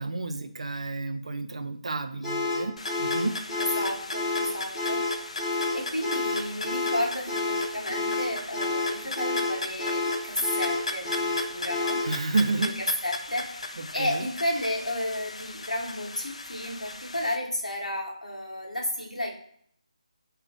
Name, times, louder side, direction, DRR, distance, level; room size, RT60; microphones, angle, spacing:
voice 1, 0.0-3.3 12.0-12.7 13.8-14.2, right 3 dB, 60° right, 8 dB, 0.4 m, -30 dB
sound 1, 2.2-12.2, left 3 dB, 10° left, 0.9 m, -29 dB
sound 2, 2.8-17.4, left 2 dB, 65° left, 0.3 m, -37 dB
voice 2, 3.8-5.1 5.7-12.1 12.6-12.7 13.0-13.7 13.9-19.3, left 1 dB, 85° left, 0 dB, 0.8 m, -32 dB
2.4 x 2.1 x 3.7 m, 0.66 s
figure-of-eight pair, 155°, 4 cm